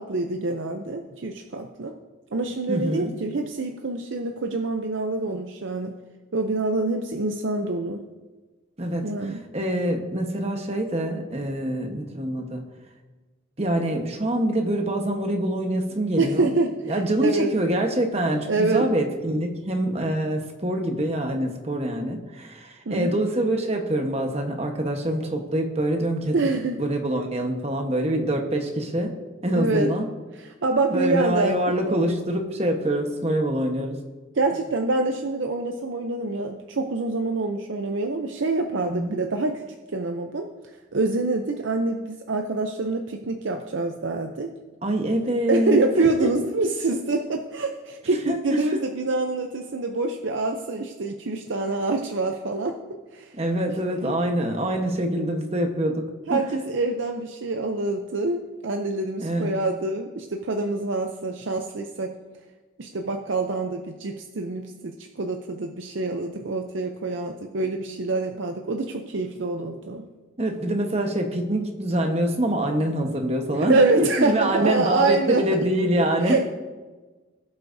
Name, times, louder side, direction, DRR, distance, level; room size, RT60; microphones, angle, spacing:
voice 1, 0.0-1.9 2.3-5.9 6.3-8.0 9.0-9.4 16.2-17.5 18.5-18.9 22.9-23.2 26.3-26.8 29.5-29.9 30.4-32.0 34.3-39.6 39.9-40.5 40.9-44.5 45.5-52.8 53.1-53.3 54.0-54.1 56.3-62.1 62.8-70.0 73.7-75.4 76.0-76.4, right 3 dB, 75° right, 4 dB, 0.6 m, -26 dB
voice 2, 2.7-3.2 8.8-12.6 13.6-16.5 16.9-26.3 26.8-29.1 29.4-30.1 30.9-34.0 38.9-39.2 44.8-46.3 48.3-48.8 53.3-56.4 59.2-59.5 70.4-76.4, right 1 dB, 30° right, 3 dB, 1.1 m, -25 dB
19.0 x 8.1 x 2.7 m, 1.3 s
head